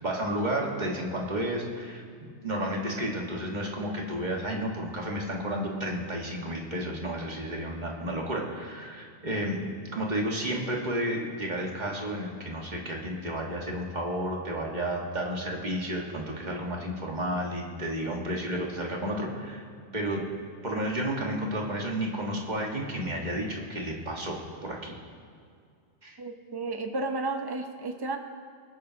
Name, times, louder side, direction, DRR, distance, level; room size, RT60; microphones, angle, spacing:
voice 1, 0.0-9.6 9.9-19.6 19.9-20.2 20.6-24.4 24.6-25.0 26.0-26.2, right 1 dB, 40° right, -1 dB, 1.7 m, -32 dB
voice 2, 26.2-28.2, right 3 dB, 25° right, 5 dB, 0.7 m, -32 dB
24.5 x 9.2 x 2.9 m, 2.2 s
omnidirectional pair, 1.2 m